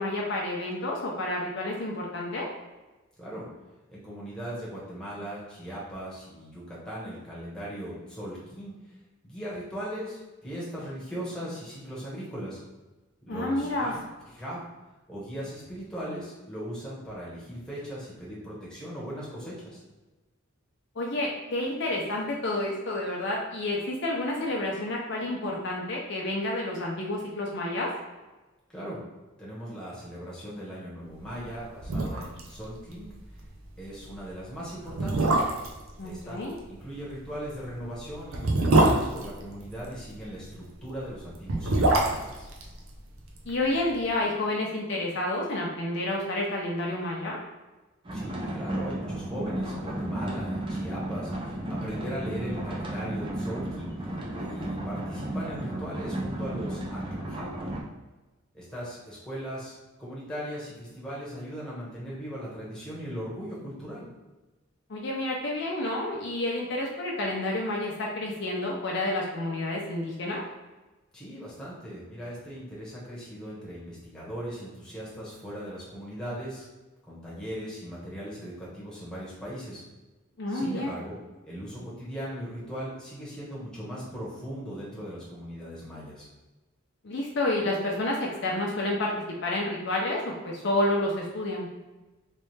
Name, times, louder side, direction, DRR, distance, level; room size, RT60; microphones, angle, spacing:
voice 1, 0.0-2.5 13.3-13.9 21.0-27.9 36.0-36.5 43.5-47.4 64.9-70.4 80.4-80.9 87.0-89.1 89.4-91.7, left 1 dB, 55° left, -2 dB, 0.6 m, -29 dB
voice 2, 3.9-8.8 9.2-12.6 13.2-14.0 14.3-14.7 15.1-19.8 28.7-29.0 29.4-33.1 33.8-35.4 36.0-36.4 36.7-42.5 48.1-57.0 57.3-57.6 58.5-64.1 71.1-76.7 77.0-79.8 80.5-81.2 81.4-86.3, equal, 5° left, -7 dB, 1.2 m, -38 dB
sound 1, 31.4-31.5 31.8-32.5 32.7-32.8 33.2-33.4 34.1-34.2 34.9-35.8 37.3-40.0 41.3-43.5 43.8-43.9, right 2 dB, 70° right, 0.6 m, -24 dB
sound 2, 48.0-57.8, right 1 dB, 25° right, 0.6 m, -33 dB
3.3 x 3.1 x 3.2 m, 1.1 s
head